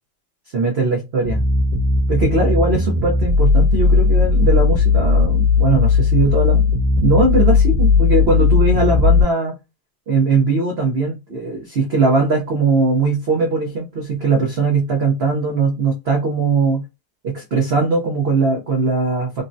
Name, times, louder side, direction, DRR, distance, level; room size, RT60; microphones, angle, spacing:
voice 1, 0.5-1.4 2.1-6.6 7.0-9.6 10.1-16.8 17.2-19.4, right 3 dB, 75° right, 0.5 m, -19 dB
sound 1, 1.2-9.2, left 4 dB, 50° right, 1.2 m, -16 dB
3.6 x 2.1 x 2.5 m
omnidirectional pair, 2.0 m